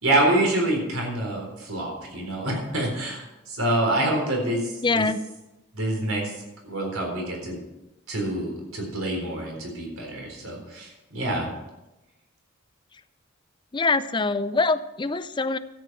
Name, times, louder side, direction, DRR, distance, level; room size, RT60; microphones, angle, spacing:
voice 1, 0.0-5.1 5.7-7.6 8.1-11.5, right 1 dB, 75° right, 0 dB, 4.0 m, -26 dB
voice 2, 4.8-5.2 13.7-15.6, left 3 dB, 20° left, 13 dB, 0.5 m, -24 dB
13.0 x 8.9 x 6.1 m, 0.99 s
head